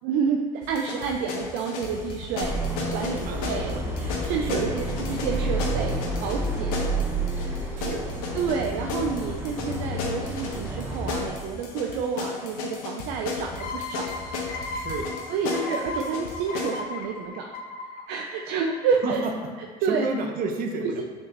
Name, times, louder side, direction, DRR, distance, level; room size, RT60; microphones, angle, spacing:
voice 1, 0.0-2.6 2.9-4.8 5.1-6.9 7.3-7.5 8.3-14.2 15.3-17.5 18.1-19.2 19.8-20.1 20.8-21.0, right 6 dB, 65° right, 2 dB, 0.6 m, -29 dB
sound 1, 0.6-16.8, left 5 dB, 80° left, 1.3 m, -34 dB
sound 2, 2.4-11.2, right 2 dB, 10° right, 1.4 m, -30 dB
voice 2, 3.2-3.9 4.4-4.8 7.8-8.0 14.7-15.1 19.0-19.3 19.8-21.0, right 3 dB, 50° right, 3 dB, 1.1 m, -31 dB
sound 3, 13.6-19.0, left 3 dB, 55° left, 0.9 m, -36 dB
6.8 x 6.6 x 3.0 m, 1.5 s
supercardioid pair, 90°, 18 cm